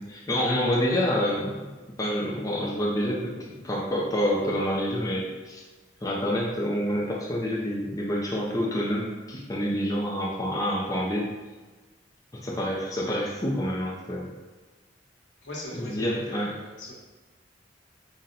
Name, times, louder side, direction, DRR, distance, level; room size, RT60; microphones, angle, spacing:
voice 1, 0.0-1.7 2.0-5.6 6.0-11.3 12.3-14.3 15.7-16.5, equal, 20° left, -4 dB, 0.4 m, -27 dB
voice 2, 15.4-16.9, left 1 dB, 80° left, -4 dB, 1.1 m, -40 dB
4.1 x 2.1 x 3.8 m, 1.2 s
head